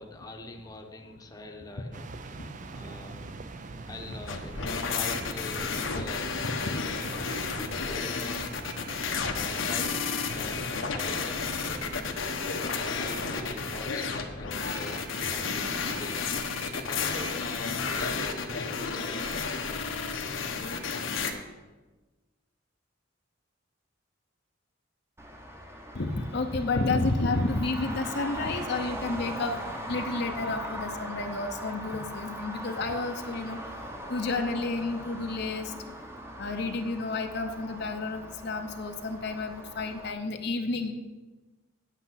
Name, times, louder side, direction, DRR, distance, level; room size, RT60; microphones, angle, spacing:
voice 1, 0.0-2.1 2.7-3.4 3.9-8.8 9.4-19.5 33.6-33.7, left 1 dB, 20° left, 3 dB, 0.9 m, -44 dB
sound 1, 1.9-13.7, right 3 dB, 40° right, 0.5 m, -44 dB
sound 2, 4.3-21.3, left 5 dB, 85° left, 1.0 m, -32 dB
voice 2, 6.4-6.8 25.9-29.6 29.9-33.6 34.0-35.7 36.4-40.9, left 3 dB, 55° left, 5 dB, 0.7 m, -30 dB
Traffic noise roadway noise, 25.2-40.1, equal, 15° right, 0.9 m, -40 dB
9.0 x 8.3 x 5.7 m, 1.2 s
head